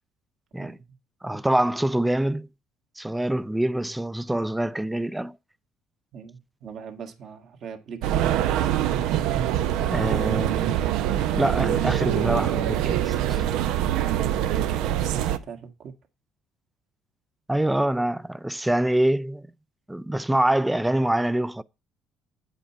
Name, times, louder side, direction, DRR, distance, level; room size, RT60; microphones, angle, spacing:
voice 1, 0.6-1.0 6.1-8.3 14.4-15.9, right 6 dB, 60° right, 1.7 m, -41 dB
voice 2, 1.2-2.5 3.0-5.4 9.9-10.8 11.1-13.4 17.5-19.5 19.9-21.6, right 1 dB, 10° right, 0.5 m, -25 dB
sound 1, 8.0-15.4, right 11 dB, 75° right, 0.7 m, -24 dB
8.6 x 5.1 x 5.6 m
supercardioid pair, 70°, 0 cm